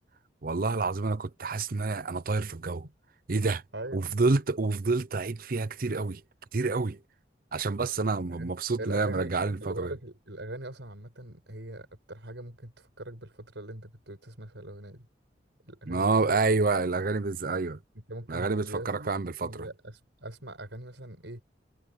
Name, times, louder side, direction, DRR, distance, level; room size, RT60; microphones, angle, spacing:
voice 1, 0.4-2.9 3.3-3.6 3.9-6.2 6.5-7.0 7.5-9.9 15.9-17.8 18.3-19.7, right 3 dB, 55° right, 0.7 m, -28 dB
voice 2, 3.7-4.2 8.3-8.5 8.8-9.3 9.6-15.1 15.6-16.4 17.9-21.4, right 1 dB, 85° right, 6.3 m, -41 dB
head